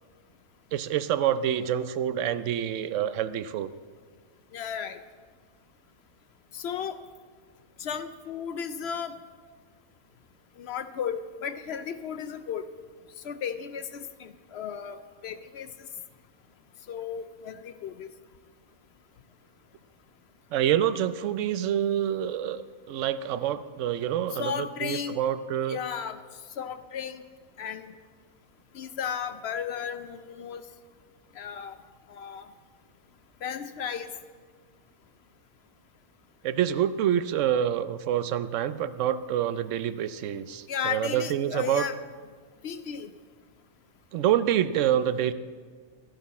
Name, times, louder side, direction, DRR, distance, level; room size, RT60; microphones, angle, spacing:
voice 1, 0.7-3.7 20.5-25.8 36.4-41.9 44.1-45.3, right 10 dB, 70° right, 13 dB, 0.8 m, -27 dB
voice 2, 4.5-5.0 6.5-7.0 7.8-9.2 10.6-12.6 13.2-15.7 16.9-18.1 24.3-25.2 25.7-26.2 26.6-27.2 27.6-27.9 28.7-30.6 31.4-31.8 32.1-32.5 33.4-34.1 40.7-42.0 42.6-43.1, left 7 dB, 65° left, 11 dB, 0.7 m, -34 dB
14.0 x 11.5 x 4.2 m, 1.6 s
omnidirectional pair, 1.5 m